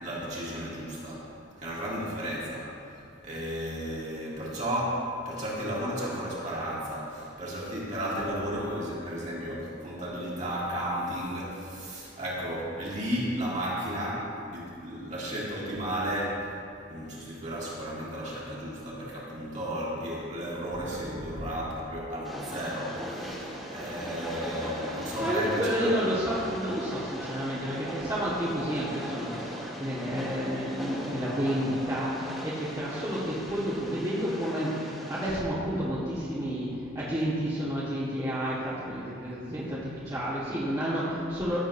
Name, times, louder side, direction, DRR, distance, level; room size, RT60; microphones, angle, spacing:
voice 1, 0.0-1.2 1.6-3.0 3.2-16.4 16.9-25.9, equal, 35° right, -7 dB, 2.2 m, -33 dB
Train, 22.2-35.4, equal, ahead, 1.5 m, -39 dB
voice 2, 25.2-36.7 36.9-41.6, equal, 20° right, -10 dB, 1.5 m, -30 dB
15.0 x 7.6 x 2.7 m, 2.5 s
head